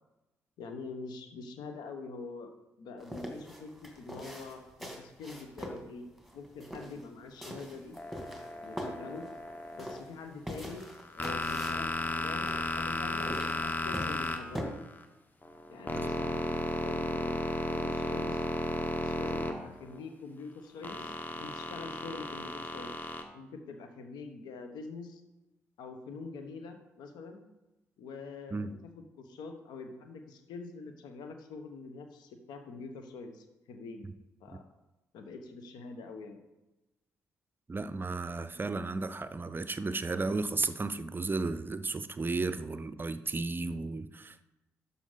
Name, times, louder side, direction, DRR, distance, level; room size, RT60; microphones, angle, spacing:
voice 1, 0.6-2.5 2.8-6.1 6.3-8.0 8.6-9.3 9.7-10.9 11.1-14.7 15.7-17.4 17.7-18.5 19.0-23.1 23.3-25.2 25.8-27.4 28.0-28.8 29.2-34.0 34.4-34.6 35.1-36.4, left 4 dB, 65° left, 6 dB, 1.2 m, -45 dB
sound 1, 3.0-14.6, equal, ahead, 2.3 m, -43 dB
sound 2, 8.0-10.0 10.8-15.0 15.4-20.0 20.8-23.2, left 1 dB, 25° left, 1.3 m, -34 dB
voice 2, 37.7-44.4, right 3 dB, 25° right, 13 dB, 0.5 m, -34 dB
12.0 x 5.7 x 4.0 m, 1.0 s
hypercardioid pair, 40°, 8 cm